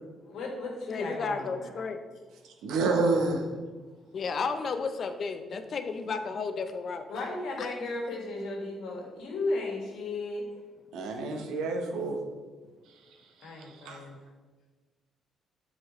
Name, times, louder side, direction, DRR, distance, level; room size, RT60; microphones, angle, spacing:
voice 1, 0.3-1.7 7.1-10.4 13.4-14.2, left 2 dB, 80° left, -1 dB, 1.5 m, -35 dB
voice 2, 0.9-2.0 4.1-7.1 7.6-7.7, left 4 dB, 50° left, 8 dB, 0.5 m, -33 dB
voice 3, 2.6-3.4 10.9-12.2 13.8-14.0, right 3 dB, 85° right, 3 dB, 0.8 m, -28 dB
7.7 x 4.1 x 3.0 m, 1.3 s
cardioid pair, 90°, 0 cm